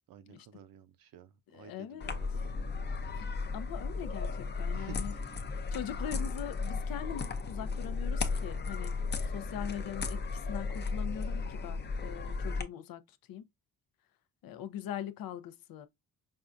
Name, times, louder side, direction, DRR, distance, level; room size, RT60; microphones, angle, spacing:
voice 1, 0.1-2.5 4.7-5.2, right 9 dB, 65° right, 0.6 m, -52 dB
voice 2, 1.5-2.1 3.1-5.1 5.5-13.5 14.4-15.9, left 10 dB, 70° left, 0.6 m, -42 dB
sound 1, 2.0-12.6, left 4 dB, 30° left, 0.6 m, -35 dB
5.3 x 2.3 x 2.5 m
cardioid pair, 120°, 36 cm